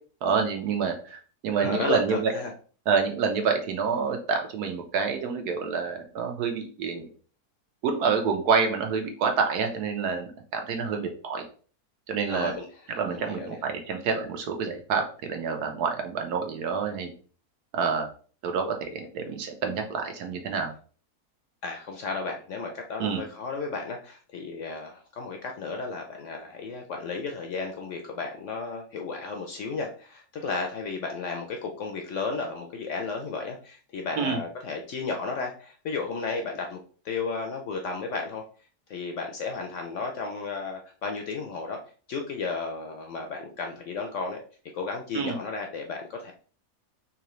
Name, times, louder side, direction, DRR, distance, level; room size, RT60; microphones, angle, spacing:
voice 1, 0.2-2.3 2.9-7.1 7.8-11.4 12.1-12.5 13.0-17.1 17.7-18.1 18.4-20.7 23.0-23.2 34.2-34.4 45.1-45.4, right 5 dB, 80° right, 4 dB, 1.3 m, -27 dB
voice 2, 1.6-2.5 12.3-13.6 21.6-36.8 37.0-38.4 38.9-41.8 42.1-44.4 44.7-46.3, left 4 dB, 70° left, 3 dB, 0.7 m, -33 dB
3.7 x 2.9 x 3.0 m, 0.41 s
omnidirectional pair, 1.7 m